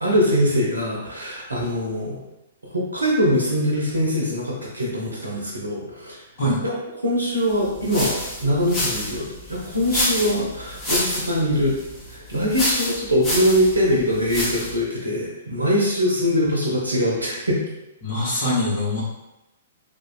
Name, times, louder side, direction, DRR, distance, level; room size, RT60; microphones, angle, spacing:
voice 1, 0.0-2.2 2.6-6.2 6.6-6.7 7.0-11.8 12.1-17.6, equal, 80° right, -3 dB, 0.6 m, -22 dB
sound 1, 7.5-14.9, left 1 dB, 20° left, 0.9 m, -29 dB
voice 2, 18.0-19.0, left 1 dB, 45° left, -9 dB, 1.4 m, -23 dB
2.9 x 2.4 x 2.2 m, 0.93 s
figure-of-eight pair, 115°, 0 cm